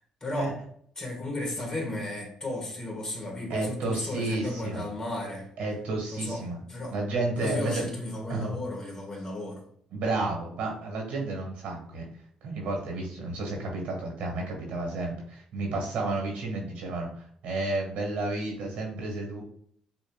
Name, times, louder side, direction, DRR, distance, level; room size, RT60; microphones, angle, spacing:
voice 1, 0.2-0.6 1.0-5.5 6.1-6.4 6.7-6.9 7.4-9.6, left 1 dB, 30° left, 1.9 m, -34 dB
voice 2, 3.5-4.9 5.6-6.6 6.9-7.9 8.3-8.6 9.9-12.1 12.4-19.4, right 2 dB, 85° right, 1.9 m, -31 dB
6.3 x 3.0 x 2.4 m
cardioid pair, 95°, 2 cm